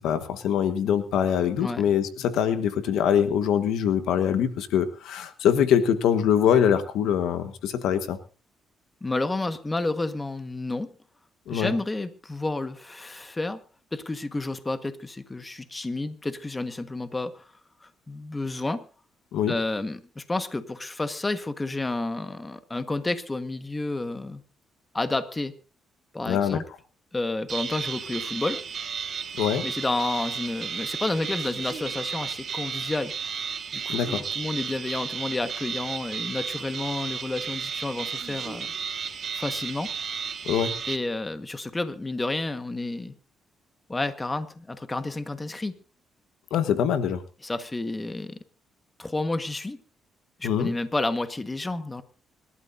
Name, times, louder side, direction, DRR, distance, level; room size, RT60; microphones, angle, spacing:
voice 1, 0.0-8.2 11.5-11.7 19.3-19.5 26.3-26.6 29.4-29.7 33.9-34.2 40.4-40.8 46.5-47.2 50.4-50.7, left 8 dB, 85° left, 10 dB, 1.4 m, -23 dB
voice 2, 9.0-10.9 11.5-13.6 13.9-17.5 17.8-18.8 19.5-24.4 24.9-25.5 26.1-26.6 27.1-28.6 29.6-33.1 33.7-38.7 39.3-39.9 40.9-43.1 43.9-45.7 47.4-48.4 49.0-49.8 50.4-52.0, left 2 dB, 20° left, 9 dB, 1.5 m, -30 dB
sound 1, 27.5-41.0, right 6 dB, 55° right, 1.9 m, -33 dB
26.0 x 12.5 x 2.7 m, 0.36 s
cardioid pair, 90°, 0 cm